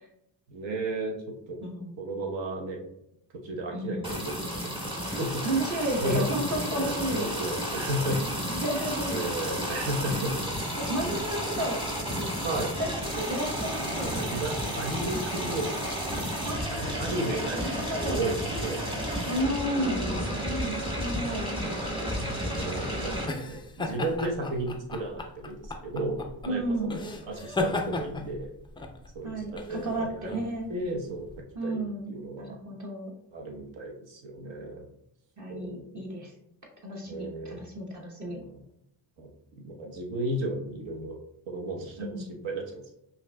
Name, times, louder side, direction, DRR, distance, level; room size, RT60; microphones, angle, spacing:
voice 1, 0.5-1.6 2.0-2.9 3.4-4.8 5.2-6.2 6.7-8.5 9.1-10.6 12.4-12.7 13.8-16.3 16.7-19.0 19.7-20.7 22.1-26.2 26.4-28.5 29.1-30.4 30.7-31.3 31.6-31.8 32.1-32.6 33.3-34.9 35.5-36.0 37.1-37.6 38.2-38.6 39.2-39.3 39.5-41.2 41.5-42.9, right 1 dB, 65° right, 1 dB, 1.1 m, -34 dB
voice 2, 1.6-2.0 3.7-4.1 5.4-7.3 8.5-9.3 10.8-14.2 16.5-16.9 17.5-18.2 19.3-21.6 26.4-27.0 29.2-30.7 31.5-32.1 32.4-33.1 35.4-36.3 36.8-38.4 42.0-42.3, right 1 dB, 35° right, -1 dB, 1.1 m, -33 dB
sound 1, 4.0-23.3, equal, 10° right, 1.1 m, -32 dB
sound 2, 23.3-31.4, left 2 dB, 10° left, 0.3 m, -35 dB
5.4 x 2.6 x 2.2 m, 0.78 s
cardioid pair, 85°, 48 cm